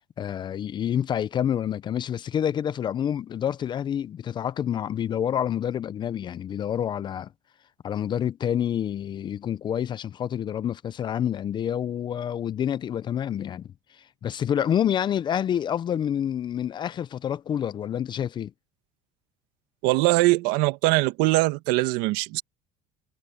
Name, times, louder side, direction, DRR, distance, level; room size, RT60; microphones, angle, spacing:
voice 1, 0.0-7.3 7.8-13.7 14.2-18.5, left 9 dB, 30° left, 0.5 m, -28 dB
voice 2, 19.8-22.4, right 20 dB, 75° right, 1.7 m, -22 dB
cardioid pair, 135°, 15 cm